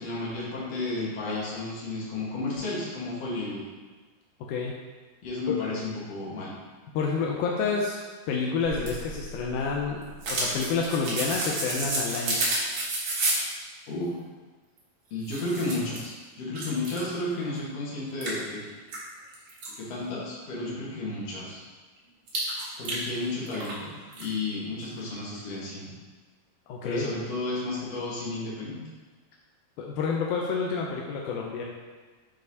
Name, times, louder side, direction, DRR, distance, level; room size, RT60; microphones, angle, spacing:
voice 1, 0.0-3.6 5.2-6.5 13.9-14.2 15.1-18.6 19.8-21.6 22.8-25.9 26.8-28.8, left 2 dB, 55° left, -6 dB, 2.1 m, -32 dB
voice 2, 6.9-8.0 8.3-12.4 26.7-27.1 29.8-31.6, left 5 dB, 85° left, -2 dB, 1.8 m, -29 dB
sound 1, 8.6-13.5 14.8-14.9 15.2-16.1 16.5-17.1 17.6-17.7 18.2-19.7 22.3-23.8 24.1-24.2, right 2 dB, 65° right, 1.4 m, -31 dB
9.0 x 4.0 x 2.7 m, 1.3 s
omnidirectional pair, 4.2 m